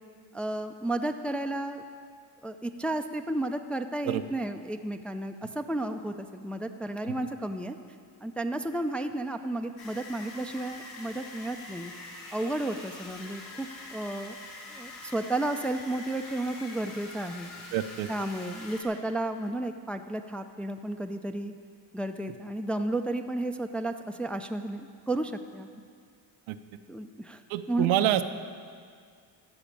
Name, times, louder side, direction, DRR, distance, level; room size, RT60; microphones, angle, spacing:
voice 1, 0.3-1.8 2.4-7.8 8.2-11.9 12.3-14.4 14.7-17.5 18.1-21.5 21.9-25.7 26.9-27.4 27.7-27.9, right 1 dB, 5° left, 6 dB, 0.4 m, -32 dB
sound 1, 9.8-18.8, left 2 dB, 85° left, 2.2 m, -45 dB
voice 2, 17.7-18.1 26.5-26.6 27.5-28.2, right 13 dB, 85° right, 10 dB, 0.7 m, -26 dB
13.5 x 5.0 x 8.4 m, 2.1 s
cardioid pair, 95°, 47 cm